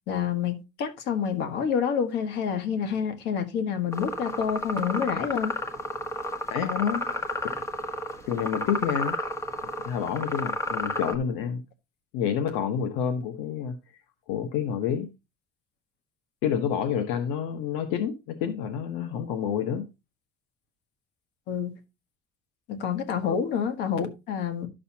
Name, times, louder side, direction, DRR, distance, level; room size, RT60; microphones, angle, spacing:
voice 1, 0.1-5.5 21.5-21.8 22.7-24.7, left 7 dB, 65° left, 1.6 m, -28 dB
sound 1, 3.9-11.2, left 1 dB, 15° left, 1.4 m, -32 dB
voice 2, 6.5-7.1 8.3-9.2 9.8-11.6 12.1-13.8 14.3-15.1 16.4-19.8 23.2-23.4, left 8 dB, 90° left, 1.2 m, -28 dB
11.5 x 6.7 x 2.8 m
cardioid pair, 135°, 19 cm